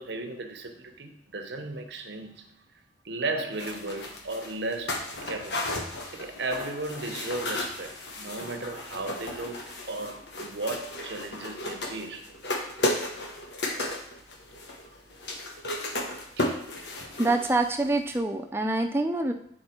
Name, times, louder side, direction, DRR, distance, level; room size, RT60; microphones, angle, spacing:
voice 1, 0.0-2.5 3.0-5.7 6.1-12.3 16.4-16.6, right 2 dB, 75° right, 0.9 m, -35 dB
sound 1, 3.6-17.9 18.1-18.2, left 1 dB, 70° left, 1.2 m, -34 dB
voice 2, 17.2-19.3, right 2 dB, 15° right, 0.5 m, -26 dB
8.7 x 4.4 x 4.4 m
head